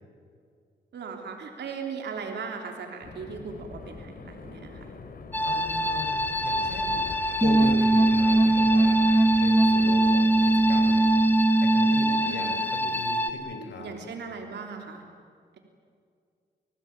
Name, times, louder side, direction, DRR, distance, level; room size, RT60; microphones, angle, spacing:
voice 1, 0.9-4.8 12.2-12.6 13.8-15.0, right 5 dB, 80° right, 3 dB, 3.4 m, -38 dB
sound 1, 3.0-11.3, left 4 dB, 55° left, 3.8 m, -44 dB
sound 2, 5.3-13.3, left 1 dB, 10° left, 3.0 m, -28 dB
voice 2, 5.4-7.0 7.4-11.0 11.6-14.0, left 3 dB, 85° left, 6 dB, 4.5 m, -38 dB
sound 3, 7.4-12.4, right 2 dB, 10° right, 1.1 m, -21 dB
29.0 x 20.5 x 9.0 m, 2.2 s
cardioid pair, 75°, 18 cm